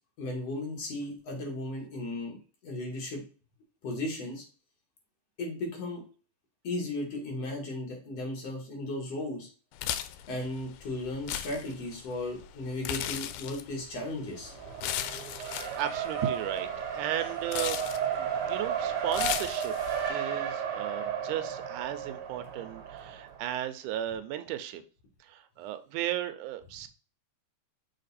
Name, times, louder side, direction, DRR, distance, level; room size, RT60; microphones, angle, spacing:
voice 1, 0.2-2.4 2.6-3.2 3.8-4.4 5.4-6.0 6.6-9.5 10.3-14.5, left 2 dB, 55° left, -1 dB, 2.9 m, -35 dB
sound 1, 9.7-20.1, left 11 dB, 90° left, 2.1 m, -38 dB
Race car auto racing, 14.4-23.5, right 8 dB, 65° right, 1.5 m, -33 dB
voice 2, 15.4-16.7 16.9-17.8 18.2-19.7 20.1-24.8 25.2-26.9, right 11 dB, 85° right, 10 dB, 2.2 m, -35 dB
6.6 x 3.6 x 4.1 m, 0.36 s
omnidirectional pair, 3.5 m